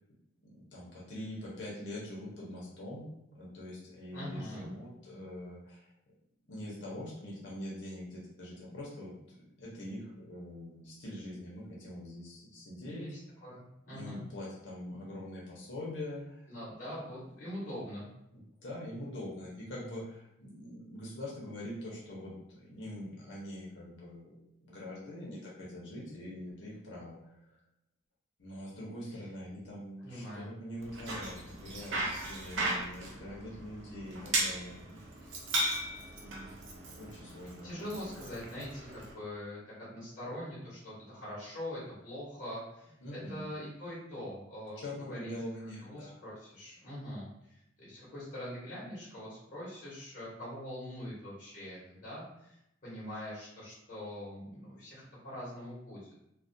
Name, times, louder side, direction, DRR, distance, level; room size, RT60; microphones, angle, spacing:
voice 1, 0.4-5.9 6.5-13.1 13.9-16.4 18.3-24.4 24.6-27.6 28.4-35.3 36.2-36.5 36.9-38.1 43.0-43.5 44.8-46.2, left 1 dB, 70° left, -6 dB, 0.7 m, -44 dB
voice 2, 4.1-4.7 12.8-14.2 16.5-18.1 30.0-30.5 37.6-45.3 45.8-47.3 47.8-52.5 52.8-56.1, left 1 dB, 45° left, -9 dB, 1.0 m, -43 dB
Bicycle, 30.8-39.1, right 2 dB, 75° right, 0.5 m, -37 dB
2.4 x 2.1 x 2.6 m, 0.82 s
head